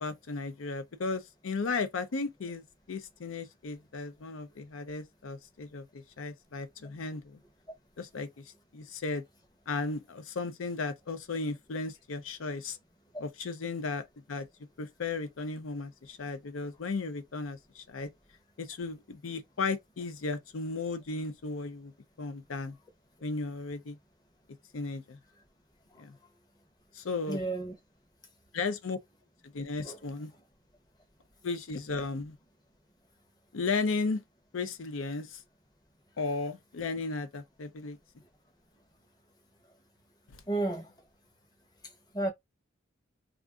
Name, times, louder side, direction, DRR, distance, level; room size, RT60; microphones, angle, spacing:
voice 1, 0.0-7.4 8.0-8.3 8.7-9.2 9.7-12.8 13.2-14.5 14.8-18.1 18.6-21.9 22.2-22.8 23.2-24.0 24.7-25.2 26.0-26.1 26.9-27.4 28.5-29.0 29.5-30.3 31.4-32.3 33.5-34.2 34.5-35.4 36.2-38.0, left 4 dB, 85° left, 0.5 m, -35 dB
voice 2, 27.3-27.7 29.8-30.0 40.5-40.9 42.1-42.3, right 2 dB, 20° left, 0.7 m, -31 dB
2.4 x 2.4 x 3.5 m
head